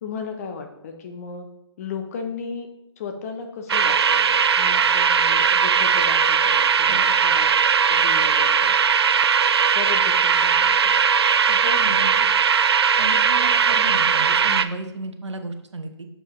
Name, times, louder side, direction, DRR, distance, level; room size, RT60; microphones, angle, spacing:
voice 1, 0.0-1.5 1.8-2.7 3.0-7.5 7.8-8.8 9.7-11.0, left 5 dB, 35° left, 5 dB, 0.8 m, -35 dB
sound 1, 3.7-14.6, right 6 dB, 65° right, 0.4 m, -19 dB
voice 2, 11.5-12.3 13.0-16.1, right 2 dB, 85° right, 6 dB, 0.9 m, -33 dB
7.0 x 5.6 x 3.1 m, 0.83 s
figure-of-eight pair, 145°, 15 cm